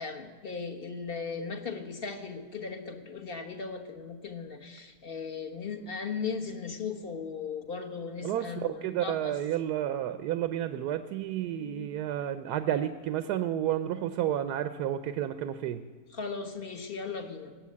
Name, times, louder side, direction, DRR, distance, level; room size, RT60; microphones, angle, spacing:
voice 1, 0.0-9.4 11.6-11.9 16.1-17.5, left 5 dB, 40° left, 4 dB, 1.3 m, -37 dB
voice 2, 8.2-15.8, right 11 dB, 80° right, 10 dB, 1.2 m, -31 dB
18.5 x 7.9 x 8.4 m, 1.4 s
omnidirectional pair, 1.7 m